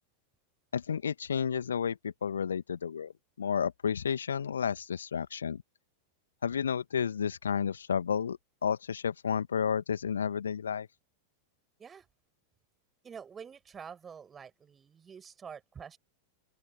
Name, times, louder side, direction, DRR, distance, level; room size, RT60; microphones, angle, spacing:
voice 1, 0.7-3.1 3.4-5.6 6.4-10.9, left 7 dB, 70° left, 2.0 m, -31 dB
voice 2, 13.0-16.0, right 7 dB, 20° right, 7.5 m, -47 dB
open air
figure-of-eight pair, 90°, 0 cm